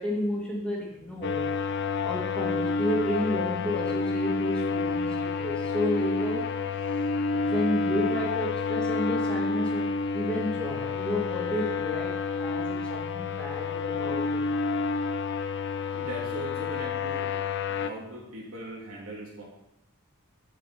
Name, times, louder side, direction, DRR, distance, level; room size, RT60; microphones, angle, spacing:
voice 1, 0.0-1.5 2.0-6.5 7.3-14.8, left 1 dB, 5° left, -3 dB, 2.1 m, -32 dB
sound 1, 1.2-17.9, left 4 dB, 55° left, 0.5 m, -29 dB
voice 2, 15.9-17.3 17.7-19.4, right 1 dB, 75° right, -3 dB, 3.1 m, -39 dB
11.0 x 5.1 x 5.2 m, 0.84 s
head